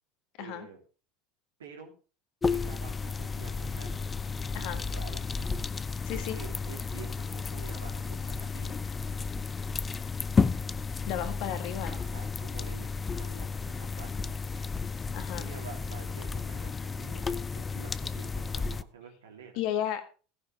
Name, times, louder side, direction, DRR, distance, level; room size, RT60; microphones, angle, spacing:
voice 1, 0.4-0.8 1.6-1.9 2.5-4.0 4.6-5.5 6.1-8.8 11.9-14.4 15.4-19.6, right 6 dB, 80° right, 3 dB, 2.8 m, -49 dB
sound 1, 2.4-18.8, left 4 dB, 25° left, 0.6 m, -33 dB
voice 2, 6.0-6.4 11.1-12.0 15.1-15.5 19.6-20.2, left 11 dB, 60° left, 8 dB, 1.8 m, -33 dB
15.0 x 10.0 x 3.2 m, 0.36 s
hypercardioid pair, 75°, 0 cm